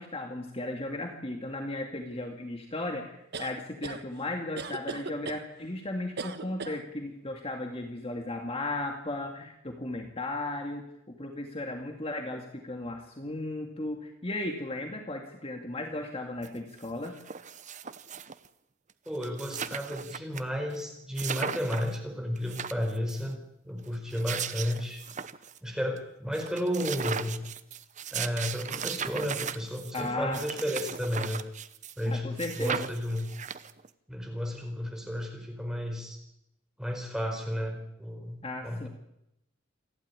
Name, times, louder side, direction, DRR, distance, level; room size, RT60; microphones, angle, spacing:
voice 1, 0.0-17.2 29.9-30.4 32.1-32.9 38.4-38.9, left 2 dB, 30° left, 3 dB, 2.2 m, -35 dB
sound 1, 3.3-4.0 4.6-5.4 6.2-6.8, right 4 dB, 55° right, 1.5 m, -37 dB
sound 2, 16.4-16.5 16.8-18.5 18.9-19.0 19.2-20.4 20.7-20.8 21.2-22.0 22.4-23.3 23.9-25.6 26.0-26.1 26.3-32.1 32.4-33.9, right 7 dB, 35° right, 0.9 m, -37 dB
voice 2, 19.1-23.4 23.6-25.0 25.6-27.4 28.1-31.4 32.0-33.3 34.1-36.2 36.8-38.9, equal, 5° right, 3 dB, 4.6 m, -33 dB
28.0 x 12.0 x 9.9 m, 0.84 s
head